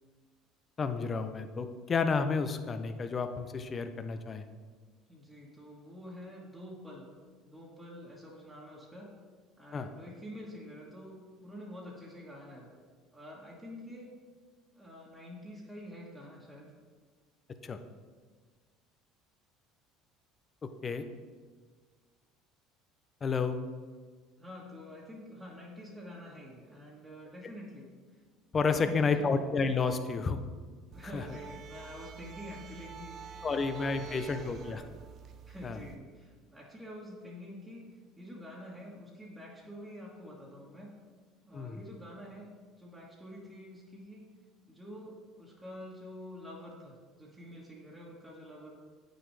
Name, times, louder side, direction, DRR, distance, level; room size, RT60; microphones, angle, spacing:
voice 1, 0.8-4.4 9.7-9.9 17.6-17.8 20.8-21.0 23.2-23.6 28.5-30.4 31.1-31.2 33.4-34.8 35.6-35.8 41.5-41.8, left 4 dB, 35° left, 9 dB, 0.6 m, -31 dB
voice 2, 5.1-7.1 7.4-9.1 9.6-12.8 13.1-14.1 14.7-16.7 24.4-28.2 28.7-29.4 30.9-33.3 33.9-34.9 35.5-37.9 38.2-41.0 41.4-42.5 42.8-44.2 44.7-48.7, equal, 10° right, -5 dB, 1.7 m, -47 dB
sound 1, 30.9-36.0, right 5 dB, 50° right, 0.6 m, -47 dB
8.7 x 6.3 x 3.3 m, 1.5 s
hypercardioid pair, 75°, 0 cm